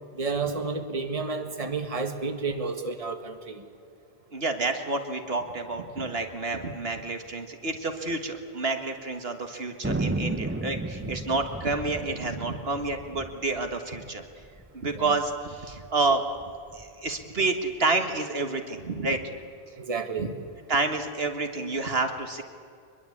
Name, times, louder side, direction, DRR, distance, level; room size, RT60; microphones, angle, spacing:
voice 1, 0.1-3.6 10.3-10.7 14.9-15.2 19.8-20.3, right 4 dB, 35° right, 6 dB, 1.8 m, -31 dB
voice 2, 4.3-14.2 14.7-16.2 16.7-19.2 20.2-20.3 20.7-22.4, right 3 dB, 70° right, 6 dB, 1.9 m, -29 dB
Thunder, 9.8-14.7 14.9-15.0 15.2-15.8 16.3-17.5, right 2 dB, 15° right, 0.7 m, -34 dB
24.0 x 21.5 x 8.5 m, 2.4 s
omnidirectional pair, 1.1 m